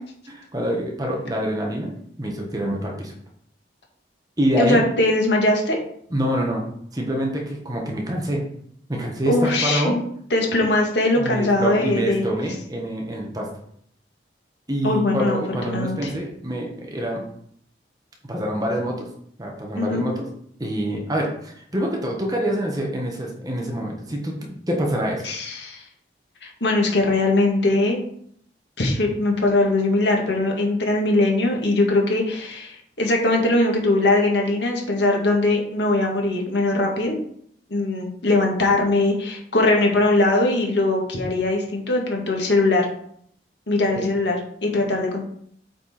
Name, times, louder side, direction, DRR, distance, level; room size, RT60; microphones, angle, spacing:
voice 1, 0.3-1.9 2.2-3.1 4.4-4.8 6.1-6.7 6.9-8.4 8.9-10.0 11.2-13.5 14.7-17.2 18.2-19.1 19.4-20.3 20.6-25.2 44.0-44.1, equal, 20° right, -1 dB, 1.4 m, -26 dB
voice 2, 4.6-5.8 9.3-10.0 10.3-12.2 14.8-16.1 19.7-20.1 25.2-25.8 26.4-28.0 28.8-37.1 37.7-42.9 43.7-45.2, left 2 dB, 80° left, 0 dB, 1.9 m, -21 dB
8.0 x 4.5 x 4.4 m, 0.66 s
head